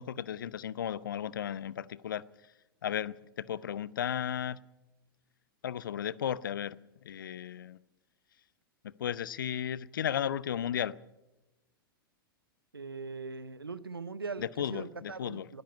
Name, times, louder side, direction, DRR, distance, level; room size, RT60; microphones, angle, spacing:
voice 1, 0.0-2.2 2.8-4.6 5.6-6.8 7.0-7.8 8.8-10.9 14.4-15.5, left 9 dB, 60° left, 0.7 m, -34 dB
voice 2, 12.7-15.6, right 4 dB, 80° right, 1.0 m, -41 dB
20.5 x 13.5 x 9.6 m
figure-of-eight pair, 100°, 12 cm